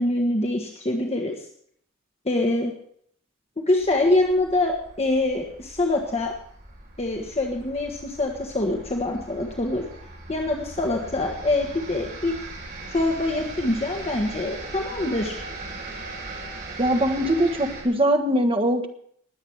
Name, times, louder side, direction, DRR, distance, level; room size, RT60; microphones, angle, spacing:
voice 1, 0.0-1.5 2.2-2.7 3.7-6.3 7.0-9.8 10.3-12.4 12.9-15.3, left 2 dB, 30° left, 1 dB, 1.3 m, -24 dB
sound 1, 3.8-17.8, right 2 dB, 50° right, 4.5 m, -39 dB
voice 2, 16.8-18.9, right 1 dB, 25° right, 6 dB, 1.4 m, -21 dB
20.5 x 8.0 x 4.7 m, 0.65 s
head